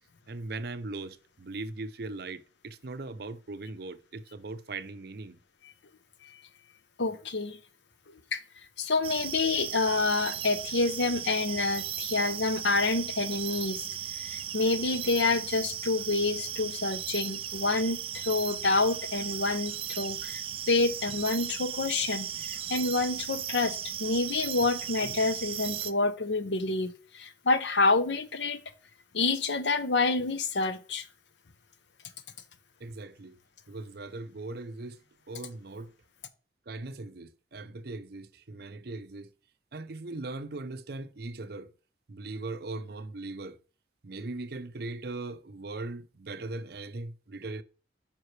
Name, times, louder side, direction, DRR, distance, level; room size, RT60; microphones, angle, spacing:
voice 1, 0.3-5.4 32.8-33.4 33.7-35.0 35.3-35.9 36.7-39.3 39.7-41.7 42.1-43.6 44.0-47.6, right 2 dB, 60° right, 0.6 m, -39 dB
voice 2, 7.0-7.6 8.3-8.4 8.8-13.8 14.2-28.6 29.1-31.1, left 3 dB, 85° left, 0.8 m, -28 dB
sound 1, 9.0-25.9, right 10 dB, 30° right, 0.3 m, -36 dB
9.0 x 5.6 x 3.3 m
head